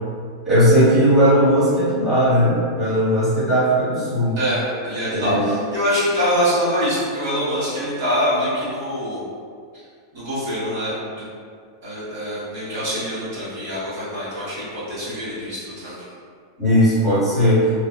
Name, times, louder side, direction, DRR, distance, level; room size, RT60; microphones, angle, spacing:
voice 1, 0.4-4.4 5.1-5.5 16.6-17.6, equal, 10° right, -15 dB, 1.1 m, -17 dB
voice 2, 4.4-9.2 9.7-9.8 10.1-11.3 11.8-16.1, equal, 60° right, -10 dB, 1.3 m, -24 dB
2.6 x 2.3 x 2.2 m, 2.1 s
supercardioid pair, 160°, 2 cm